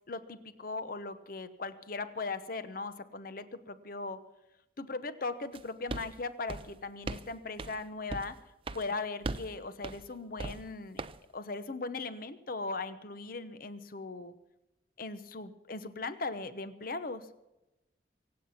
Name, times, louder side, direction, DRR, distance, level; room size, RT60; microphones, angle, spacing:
voice 1, 0.1-4.2 4.8-8.4 8.7-11.0 11.3-14.3 15.0-17.3, left 3 dB, 50° left, 12 dB, 1.0 m, -38 dB
sound 1, 5.5-5.6 5.9-6.1 6.5-7.3 7.6-7.8 8.1-8.3 8.7-8.8 9.2-9.5 9.8-10.1 10.4-10.7 11.0-11.2, right 3 dB, 30° right, 0.5 m, -38 dB
24.5 x 8.7 x 5.9 m, 0.94 s
head